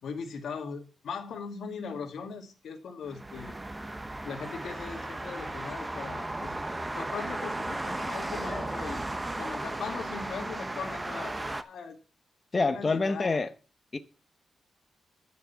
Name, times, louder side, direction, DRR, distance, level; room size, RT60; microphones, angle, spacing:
voice 1, 0.0-3.5 4.2-6.6 6.9-9.1 9.4-12.0 12.6-13.5, left 5 dB, 75° left, 2.1 m, -39 dB
sound 1, 3.1-11.6, right 2 dB, 15° right, 0.7 m, -35 dB
voice 2, 12.5-13.5 13.9-14.0, left 3 dB, 30° left, 1.0 m, -26 dB
9.7 x 6.6 x 5.6 m
wide cardioid pair, 120°, 0 cm